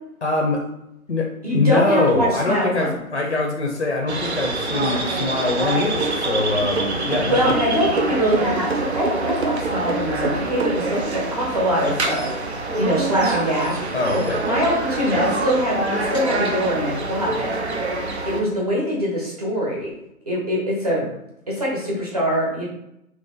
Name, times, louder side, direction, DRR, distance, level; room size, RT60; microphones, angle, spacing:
voice 1, 0.2-0.6 1.1-7.6 13.9-14.4, left 3 dB, 45° left, 1 dB, 0.6 m, -23 dB
voice 2, 1.4-3.0 7.3-12.3 12.7-13.9 14.4-17.5 18.2-19.9 20.3-21.1 21.5-22.7, equal, 25° right, -4 dB, 0.8 m, -23 dB
sound 1, 4.1-18.4, right 2 dB, 50° right, 0.5 m, -26 dB
sound 2, 6.0-11.3, right 4 dB, 70° right, 0.9 m, -27 dB
2.9 x 2.8 x 3.6 m, 0.83 s
hypercardioid pair, 165°, 44 cm